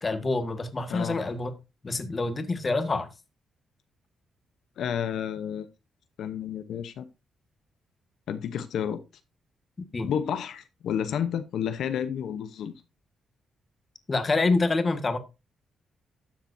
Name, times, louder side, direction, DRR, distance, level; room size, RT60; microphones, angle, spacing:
voice 1, 0.0-1.5 1.8-3.1 9.9-10.1 14.1-15.2, left 3 dB, 30° left, 1.5 m, -26 dB
voice 2, 4.8-5.7 6.2-7.0 8.3-9.0 10.0-12.7, left 8 dB, 80° left, 0.8 m, -30 dB
13.0 x 7.4 x 2.6 m
cardioid pair, 110°, 0 cm